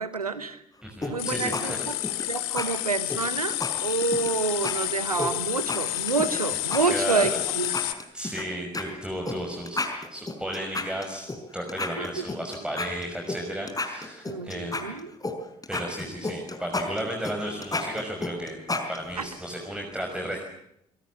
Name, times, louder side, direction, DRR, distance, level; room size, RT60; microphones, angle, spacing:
voice 1, 0.0-0.6 1.1-1.9 2.3-7.7 12.0-12.2 14.3-15.1 19.2-19.3, right 4 dB, 90° right, 14 dB, 1.1 m, -28 dB
voice 2, 0.8-1.8 6.9-7.3 8.1-9.8 10.1-11.3 11.5-14.9 15.7-18.6 18.9-20.4, equal, 5° right, 2 dB, 5.7 m, -33 dB
sound 1, 1.0-1.6 1.9-2.2 2.6-2.7 3.1-4.3 4.6-4.7 5.2-6.4 6.7-7.3 7.6-8.4 8.7-8.8 9.3-9.4 9.7-11.4 11.7-13.4 13.7-15.3 15.6-19.2, left 2 dB, 20° left, 5.4 m, -31 dB
sound 2, 1.2-7.9, left 17 dB, 70° left, 1.5 m, -30 dB
26.5 x 22.0 x 7.3 m, 0.76 s
figure-of-eight pair, 45°, 19 cm